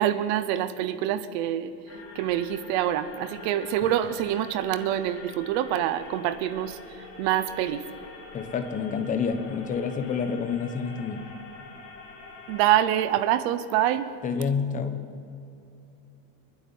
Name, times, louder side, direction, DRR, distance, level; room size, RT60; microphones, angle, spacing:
voice 1, 0.0-1.7 2.1-6.8 7.2-7.8 12.5-14.1, right 11 dB, 45° right, 13 dB, 1.0 m, -25 dB
sound 1, 1.9-12.8, left 4 dB, 45° left, 4.1 m, -45 dB
voice 2, 8.3-11.3 14.2-15.1, left 6 dB, 15° left, 8 dB, 1.1 m, -28 dB
29.0 x 10.0 x 9.5 m, 2.7 s
supercardioid pair, 170°, 47 cm